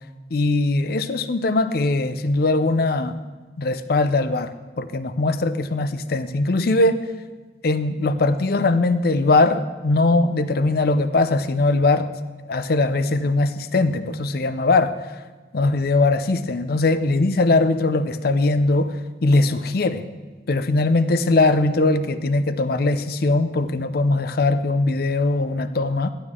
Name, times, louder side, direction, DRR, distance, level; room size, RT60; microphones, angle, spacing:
voice 1, 0.3-3.1 3.6-7.0 7.6-12.1 12.5-15.0 15.5-19.0 19.2-20.0 20.5-26.1, left 2 dB, 55° left, 12 dB, 0.5 m, -20 dB
13.5 x 11.5 x 3.7 m, 1.3 s
head